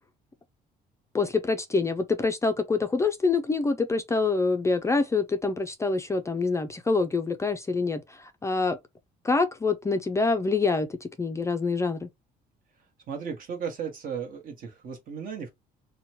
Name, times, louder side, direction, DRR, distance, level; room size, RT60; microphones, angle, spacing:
voice 1, 1.1-8.8 9.2-12.1, left 4 dB, 15° left, 0.3 m, -26 dB
voice 2, 13.1-15.5, right 7 dB, 55° right, 1.1 m, -35 dB
2.9 x 2.2 x 2.9 m
cardioid pair, 110°, 17 cm